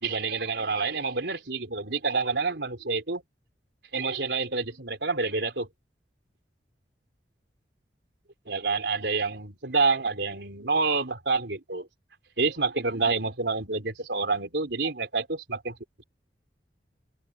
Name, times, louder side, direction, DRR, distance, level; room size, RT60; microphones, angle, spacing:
voice 1, 0.0-3.2 3.9-5.7 8.5-11.9 12.4-15.8, right 4 dB, 75° right, 3.8 m, -28 dB
open air
head